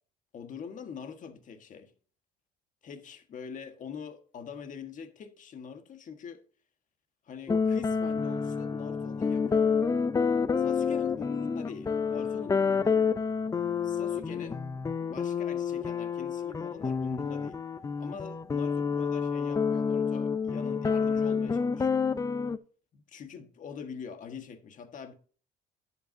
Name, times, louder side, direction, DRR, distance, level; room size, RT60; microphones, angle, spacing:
voice 1, 0.3-1.9 2.8-6.4 7.2-9.6 10.6-13.1 13.8-14.6 15.1-17.6 18.0-22.1 22.9-25.1, left 6 dB, 50° left, 1.5 m, -44 dB
sound 1, 7.5-22.6, left 5 dB, 20° left, 0.5 m, -29 dB
10.5 x 8.0 x 2.7 m
cardioid pair, 110°, 17 cm